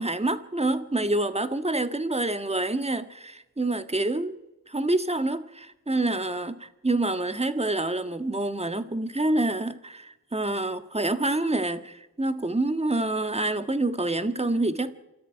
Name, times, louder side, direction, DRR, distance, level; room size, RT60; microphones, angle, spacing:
voice 1, 0.0-4.3 4.7-14.9, right 2 dB, 15° right, 1.6 m, -27 dB
27.5 x 13.5 x 9.2 m
cardioid pair, 60°, 38 cm